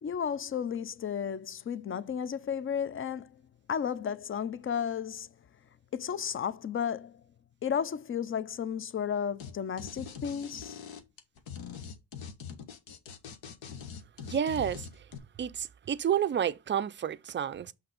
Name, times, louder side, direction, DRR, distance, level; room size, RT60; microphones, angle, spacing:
voice 1, 0.0-3.4 3.7-5.3 5.9-7.2 7.6-10.8, left 8 dB, 30° left, 0.5 m, -33 dB
sound 1, 9.4-9.5 9.8-15.2, left 7 dB, 70° left, 1.3 m, -43 dB
voice 2, 14.2-14.9 15.4-17.7, right 9 dB, 25° right, 0.5 m, -30 dB
5.8 x 3.2 x 5.1 m
supercardioid pair, 60°, 47 cm